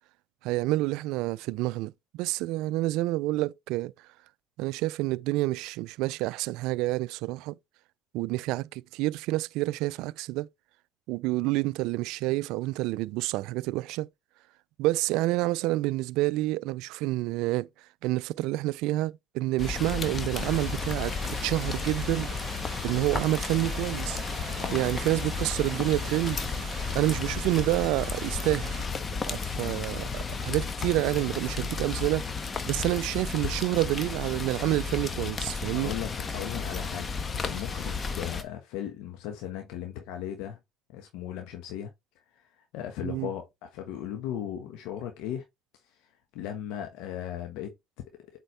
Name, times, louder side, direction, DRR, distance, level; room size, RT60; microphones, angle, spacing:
voice 1, 0.4-3.9 4.6-7.6 8.1-10.5 11.1-14.1 14.8-17.7 18.0-24.2 24.7-26.4 26.9-28.7 29.2-32.3 32.7-35.9 43.0-43.3, right 18 dB, 75° right, 0.3 m, -28 dB
Rain, 19.6-38.4, left 4 dB, 35° left, 1.2 m, -33 dB
sound 1, 20.3-28.9, right 10 dB, 60° right, 1.1 m, -44 dB
voice 2, 35.7-37.1 37.4-40.6 40.9-41.9 42.3-45.4 46.0-46.1 46.3-47.7, left 10 dB, 80° left, 1.2 m, -37 dB
8.2 x 4.4 x 3.3 m
supercardioid pair, 80°, 0 cm